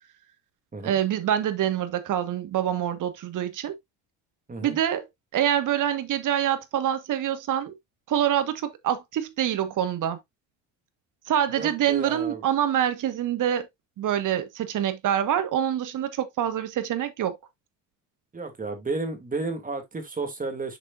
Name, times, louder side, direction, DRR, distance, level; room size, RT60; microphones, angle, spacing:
voice 1, 0.8-3.7 4.6-5.0 5.3-7.7 8.1-10.2 11.3-13.7 14.0-17.4, right 10 dB, 55° right, 1.6 m, -25 dB
voice 2, 11.5-12.4 18.3-20.8, right 3 dB, 20° right, 2.6 m, -32 dB
6.9 x 6.3 x 2.6 m
supercardioid pair, 90°, 38 cm